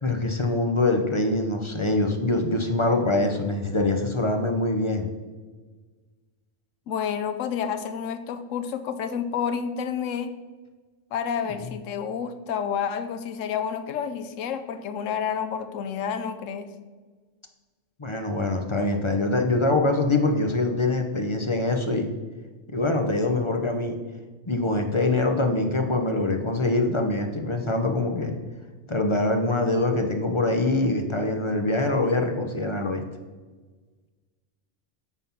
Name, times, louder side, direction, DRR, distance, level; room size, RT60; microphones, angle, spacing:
voice 1, 0.0-5.1 18.0-22.1 22.7-24.0 24.5-28.4 28.9-33.0, left 2 dB, 30° left, 4 dB, 0.6 m, -24 dB
voice 2, 6.9-10.3 11.1-16.7, left 7 dB, 90° left, 10 dB, 1.0 m, -29 dB
9.2 x 4.1 x 5.8 m, 1.4 s
omnidirectional pair, 1.3 m